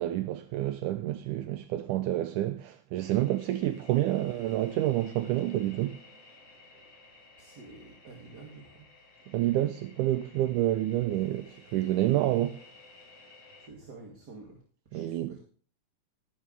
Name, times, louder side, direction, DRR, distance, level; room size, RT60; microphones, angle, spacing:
voice 1, 0.0-6.0 9.3-12.6 14.9-15.4, right 14 dB, 80° right, 2.1 m, -28 dB
sound 1, 3.0-13.7, left 3 dB, 40° left, 4.0 m, -55 dB
voice 2, 7.4-8.9 13.6-15.4, right 3 dB, 35° right, 2.4 m, -49 dB
14.0 x 10.5 x 3.4 m
omnidirectional pair, 3.8 m